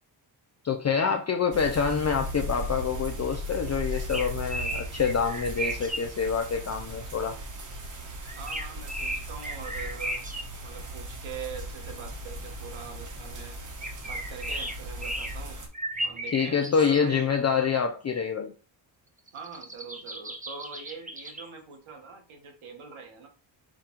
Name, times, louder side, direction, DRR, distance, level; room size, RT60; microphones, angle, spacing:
voice 1, 0.6-7.4 16.3-18.5, left 6 dB, 35° left, 4 dB, 0.5 m, -26 dB
sound 1, 1.5-15.7, equal, 40° right, 1.1 m, -37 dB
sound 2, 3.9-6.0 6.3-6.4 8.3-10.4 13.8-15.4 15.7-17.0 17.3-17.4 19.3-21.5, right 1 dB, 15° right, 0.7 m, -35 dB
voice 2, 8.4-10.2 10.6-13.6 14.0-15.6 16.0-17.3 19.3-23.3, right 6 dB, 80° right, 3 dB, 1.4 m, -43 dB
5.0 x 2.3 x 4.4 m, 0.36 s
wide cardioid pair, 110°, 48 cm